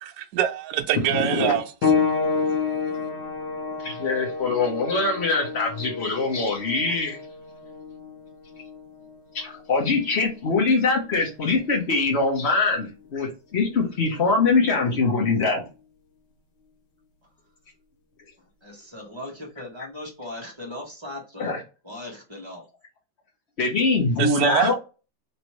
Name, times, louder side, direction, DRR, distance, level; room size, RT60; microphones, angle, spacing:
voice 1, 0.0-1.6 24.2-24.7, right 10 dB, 75° right, 1.1 m, -24 dB
voice 2, 1.1-1.5 3.8-7.2 9.3-15.6 21.4-21.6 23.6-24.7, left 3 dB, 45° left, 1.2 m, -23 dB
sound 1, 1.8-12.0 13.0-13.1 13.8-13.9, left 5 dB, 75° left, 1.6 m, -30 dB
voice 3, 18.4-21.6 21.8-22.6, left 1 dB, 15° right, 1.3 m, -38 dB
3.3 x 3.0 x 3.0 m
omnidirectional pair, 1.8 m